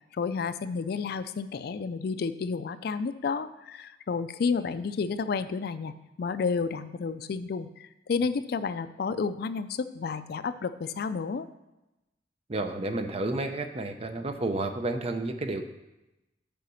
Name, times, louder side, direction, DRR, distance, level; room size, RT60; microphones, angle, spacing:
voice 1, 0.1-11.5, left 5 dB, 60° left, 13 dB, 0.4 m, -31 dB
voice 2, 12.5-15.6, right 2 dB, 35° right, 7 dB, 0.6 m, -31 dB
6.8 x 5.0 x 6.2 m, 0.97 s
head